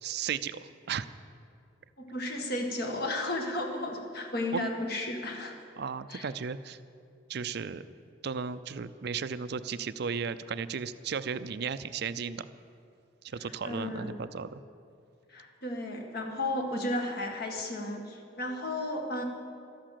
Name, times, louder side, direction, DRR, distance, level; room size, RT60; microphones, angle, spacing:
voice 1, 0.0-1.1 4.5-4.6 5.8-6.8 7.3-7.9 8.2-12.5 13.2-14.6, right 6 dB, 60° right, 13 dB, 0.5 m, -35 dB
voice 2, 2.0-5.5 6.1-6.3 13.4-14.2 15.3-19.2, left 1 dB, 55° left, 2 dB, 1.8 m, -34 dB
13.0 x 11.5 x 7.6 m, 2.4 s
head